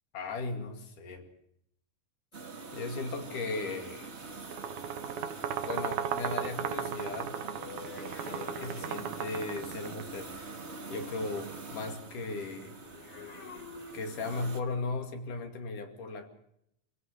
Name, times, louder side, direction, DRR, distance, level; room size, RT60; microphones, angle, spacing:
voice 1, 0.1-1.3 2.7-4.1 5.6-7.4 8.3-10.3 10.9-12.8 13.9-16.3, left 3 dB, 75° left, 5 dB, 3.9 m, -37 dB
sound 1, 2.3-14.6, right 3 dB, 30° right, 1.2 m, -44 dB
sound 2, 4.4-10.2, right 9 dB, 75° right, 2.5 m, -36 dB
sound 3, 6.8-9.5 12.7-14.6 15.5-15.7, left 5 dB, 45° left, 3.3 m, -49 dB
26.0 x 16.5 x 6.7 m, 0.75 s
omnidirectional pair, 3.7 m